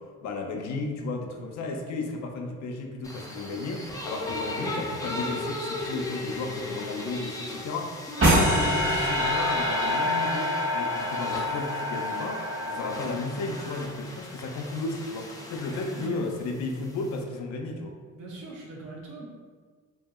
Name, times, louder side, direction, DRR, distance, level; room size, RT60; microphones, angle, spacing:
voice 1, 0.0-17.9, left 3 dB, 65° left, 2 dB, 0.4 m, -34 dB
sound 1, 3.0-17.2, left 1 dB, 10° left, 0.4 m, -37 dB
sound 2, 8.2-13.4, equal, 45° right, 1.3 m, -26 dB
voice 2, 15.7-16.2 18.1-19.2, right 3 dB, 85° right, -3 dB, 0.8 m, -41 dB
2.7 x 2.7 x 2.2 m, 1.5 s
cardioid pair, 90°, 30 cm